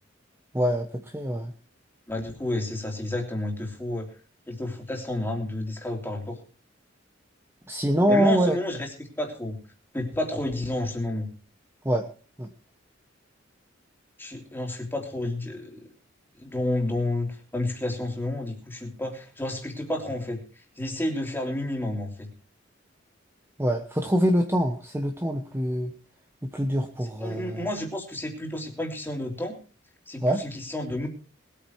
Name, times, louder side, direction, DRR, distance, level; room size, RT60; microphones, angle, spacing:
voice 1, 0.5-1.5 7.7-8.6 11.8-12.1 12.4-12.5 23.6-25.9 26.4-27.7 30.2-30.4, equal, 10° right, 4 dB, 1.1 m, -24 dB
voice 2, 2.1-4.1 4.5-6.4 8.1-9.6 9.9-11.3 14.2-15.9 16.4-20.4 20.8-22.3 27.0-29.5 30.1-31.1, left 1 dB, 10° left, 2 dB, 3.3 m, -30 dB
20.0 x 8.9 x 4.6 m, 0.38 s
head